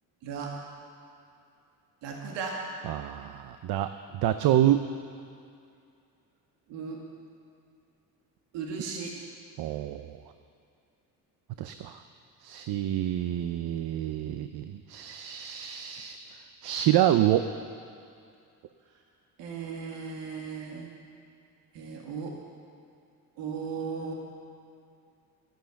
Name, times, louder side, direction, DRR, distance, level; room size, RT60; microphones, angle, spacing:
voice 1, 0.2-0.5 2.0-2.6 6.7-7.0 8.5-9.1 19.4-20.9 21.7-22.4 23.4-24.1, right 5 dB, 85° right, -1 dB, 2.0 m, -36 dB
voice 2, 2.8-4.9 9.6-10.2 11.6-12.0 12.4-16.4 16.6-17.5, right 12 dB, 60° right, 9 dB, 0.7 m, -27 dB
12.0 x 11.0 x 7.1 m, 2.4 s
cardioid pair, 100°, 42 cm